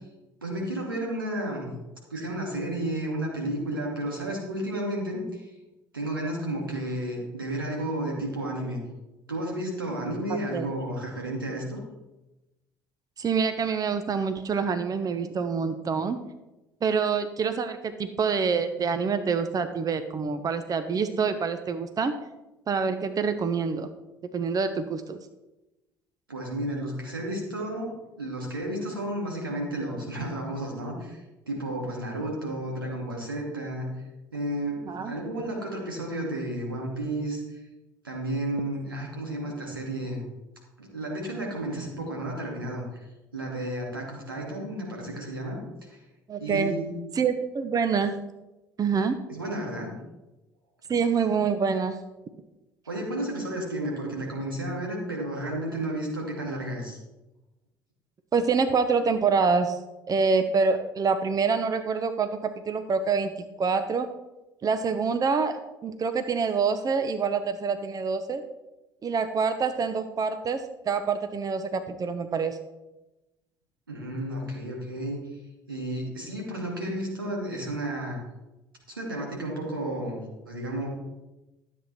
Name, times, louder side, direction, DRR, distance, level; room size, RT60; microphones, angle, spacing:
voice 1, 0.4-1.7 2.1-5.4 5.9-8.8 9.3-11.8 26.3-31.2 31.5-33.9 34.3-37.4 38.0-40.2 40.8-43.0 43.3-45.6 45.9-46.0 46.4-46.9 49.3-49.9 52.9-57.0 73.9-75.2 75.7-78.2 78.9-80.9, right 1 dB, 90° right, -1 dB, 2.5 m, -32 dB
voice 2, 13.2-16.2 16.8-22.1 22.7-23.9 24.3-25.2 34.9-35.1 46.3-46.8 47.1-48.2 48.8-49.2 50.9-52.0 58.3-59.8 60.1-63.3 63.6-64.1 64.6-68.4 69.0-72.6, right 5 dB, 35° right, 9 dB, 1.0 m, -26 dB
13.0 x 8.1 x 4.4 m, 1.0 s
figure-of-eight pair, 60°, 11 cm